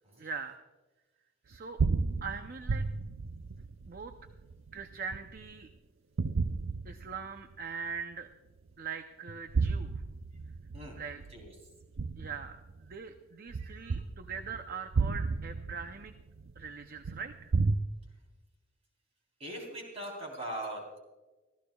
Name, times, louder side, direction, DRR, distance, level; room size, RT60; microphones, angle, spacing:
voice 1, 0.2-0.6 1.5-1.8 2.2-2.9 3.9-4.1 4.7-5.7 6.8-8.3 8.8-9.9 11.0-11.2 12.2-16.1 16.6-17.5, right 5 dB, 45° right, 7 dB, 0.6 m, -41 dB
sound 1, 1.5-5.6 6.2-7.5 8.0-8.1 9.3-12.9 13.5-17.8, right 4 dB, 85° right, 0.6 m, -33 dB
voice 2, 13.6-14.0 19.4-20.8, right 1 dB, 30° right, 0 dB, 3.7 m, -41 dB
25.0 x 15.0 x 2.3 m, 1.2 s
head